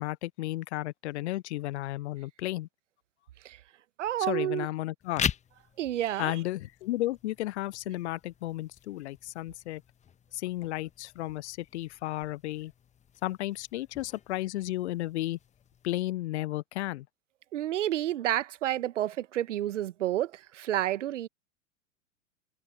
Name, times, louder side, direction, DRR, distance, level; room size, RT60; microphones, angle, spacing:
voice 1, 0.0-2.7 4.2-5.3 6.2-9.8 10.3-12.7 13.2-15.4 15.8-17.1, left 16 dB, 55° left, 0.7 m, -33 dB
voice 2, 4.0-4.7 5.8-6.3 17.5-21.3, right 13 dB, 60° right, 1.2 m, -30 dB
sound 1, 5.0-16.0, left 8 dB, 15° left, 1.2 m, -42 dB
figure-of-eight pair, 95°, 41 cm